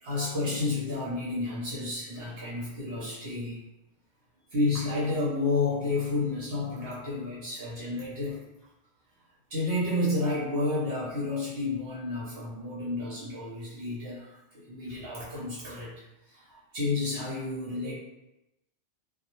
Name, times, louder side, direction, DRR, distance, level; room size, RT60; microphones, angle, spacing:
voice 1, 0.0-3.6 4.5-8.4 9.5-15.9 16.3-17.9, left 2 dB, 70° right, -7 dB, 0.9 m, -31 dB
2.1 x 2.0 x 2.9 m, 0.92 s
omnidirectional pair, 1.1 m